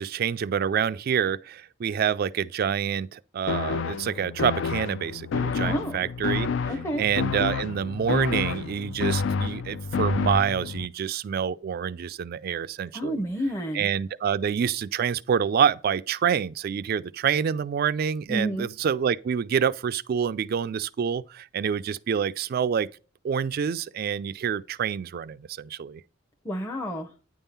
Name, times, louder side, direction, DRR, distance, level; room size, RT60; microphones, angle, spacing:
voice 1, 0.0-6.5 7.0-13.2 13.7-22.9 23.2-26.0, right 7 dB, 50° right, 0.3 m, -27 dB
sound 1, 3.5-10.9, left 5 dB, 65° left, 0.4 m, -29 dB
voice 2, 5.6-6.0 6.7-7.0 12.9-13.9 18.3-18.7 26.4-27.1, equal, 15° left, 0.7 m, -30 dB
9.5 x 3.6 x 5.5 m
head